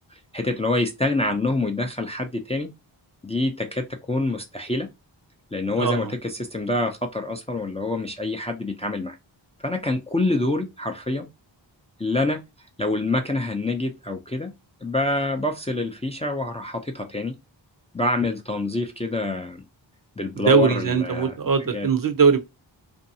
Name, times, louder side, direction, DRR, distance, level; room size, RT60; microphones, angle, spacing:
voice 1, 0.3-2.7 3.2-4.9 5.5-9.2 9.6-11.3 12.0-12.4 12.8-14.5 14.8-17.3 17.9-19.6 20.2-21.3 21.7-21.9, left 2 dB, 15° left, 0.4 m, -26 dB
voice 2, 5.8-6.1 20.4-22.4, right 5 dB, 45° right, 0.5 m, -20 dB
2.6 x 2.3 x 2.7 m
wide cardioid pair, 60°, 46 cm